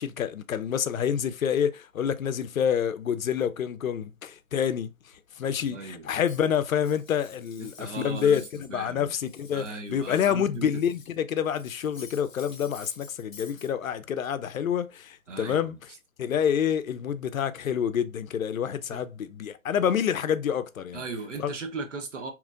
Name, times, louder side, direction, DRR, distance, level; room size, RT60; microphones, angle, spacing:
voice 1, 0.0-4.9 5.4-15.8 16.2-21.0 21.4-21.5, left 8 dB, 80° left, 0.5 m, -27 dB
voice 2, 5.6-6.1 7.6-8.4 8.7-9.2 9.5-10.8 15.3-15.8 18.9-19.0 20.9-22.3, right 3 dB, 60° right, 0.9 m, -37 dB
Cutlery silverware, 6.3-8.7 9.0-11.2 11.5-13.7, left 4 dB, 35° left, 0.8 m, -49 dB
2.9 x 2.5 x 2.4 m
figure-of-eight pair, 150°, 40 cm